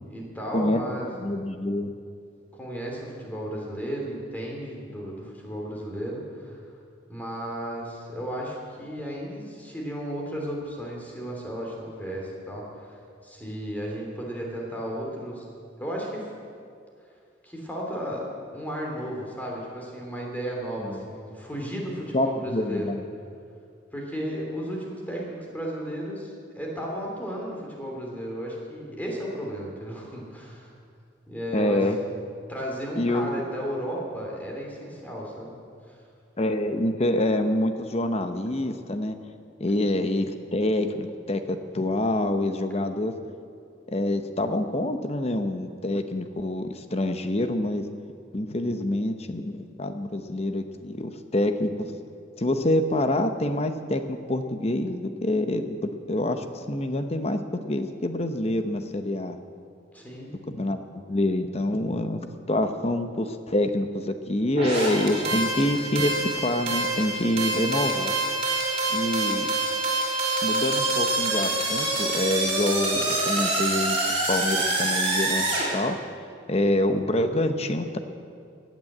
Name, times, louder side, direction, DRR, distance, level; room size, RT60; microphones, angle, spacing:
voice 1, 0.1-1.1 2.5-6.6 7.1-15.5 15.8-16.3 17.4-18.2 18.5-23.0 23.9-30.7 31.3-31.9 32.5-35.6 59.9-60.3 69.0-69.1, equal, 10° left, -2 dB, 3.0 m, -34 dB
voice 2, 1.1-1.9 20.8-21.0 22.1-23.0 31.5-32.0 33.0-33.4 36.4-39.2 39.6-43.1 43.9-47.8 48.3-51.7 52.4-57.4 57.6-59.4 60.6-60.8 61.1-62.2 62.5-68.1 68.9-69.5 70.4-74.0 74.3-76.0 76.5-78.0, left 1 dB, 35° left, 8 dB, 0.9 m, -26 dB
sound 1, 64.6-75.7, right 2 dB, 35° right, 4.0 m, -26 dB
16.0 x 9.4 x 7.9 m, 2.4 s
head